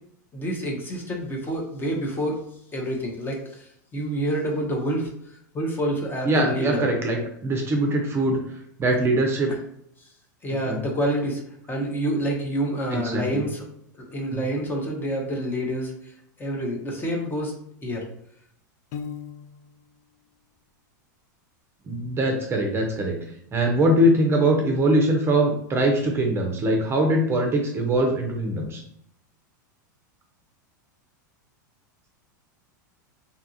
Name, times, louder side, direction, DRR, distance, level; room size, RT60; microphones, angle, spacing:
voice 1, 0.3-2.4 2.7-3.7 3.9-5.1 5.5-6.8 9.5-9.6 10.4-11.4 11.7-13.6 14.1-15.9 16.4-17.6 17.8-18.1, right 1 dB, 20° left, 1 dB, 0.7 m, -27 dB
voice 2, 6.2-8.4 8.8-9.5 10.6-10.8 12.9-13.4 21.9-23.2 23.5-28.8, right 1 dB, 25° right, 2 dB, 0.5 m, -22 dB
Piano, 18.9-19.9, left 7 dB, 55° left, 0.4 m, -37 dB
2.7 x 2.4 x 2.7 m, 0.72 s
hypercardioid pair, 110°, 10 cm